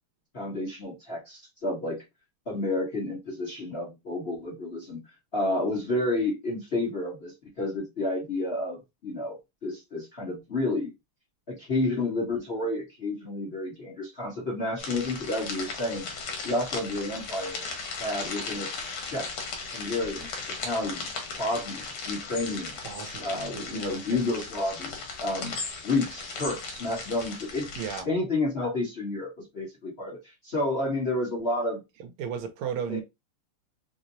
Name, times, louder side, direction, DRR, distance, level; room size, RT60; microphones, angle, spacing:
voice 1, 0.3-2.0 2.5-5.0 5.3-10.9 11.5-16.1 16.4-17.6 18.0-18.7 19.0-19.5 19.7-21.1 21.4-22.9 23.2-24.9 25.2-25.6 25.8-27.7 28.0-31.8 32.9-33.0, left 2 dB, 35° left, 1.0 m, -30 dB
sound 1, 14.8-28.0, left 4 dB, 90° left, 1.9 m, -37 dB
voice 2, 22.8-24.2 27.7-28.1 32.0-33.0, right 8 dB, 80° right, 1.4 m, -35 dB
4.4 x 2.1 x 2.6 m
omnidirectional pair, 2.4 m